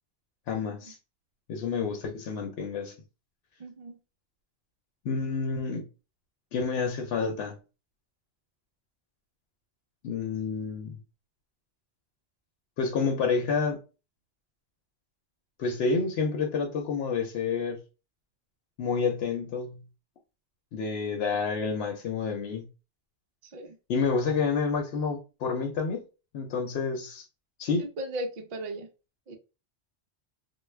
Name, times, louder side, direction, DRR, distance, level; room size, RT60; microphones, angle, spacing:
voice 1, 0.5-1.0 1.5-2.9 5.0-5.9 6.5-7.6 10.0-11.0 12.8-13.8 15.6-17.8 18.8-19.8 20.7-22.7 23.9-26.0 26.3-27.2 27.6-27.9, left 5 dB, 80° left, 0.9 m, -29 dB
voice 2, 3.6-4.0 23.5-23.8 27.8-28.9 29.3-29.4, right 1 dB, 55° right, 0.5 m, -37 dB
2.3 x 2.1 x 3.2 m
omnidirectional pair, 1.1 m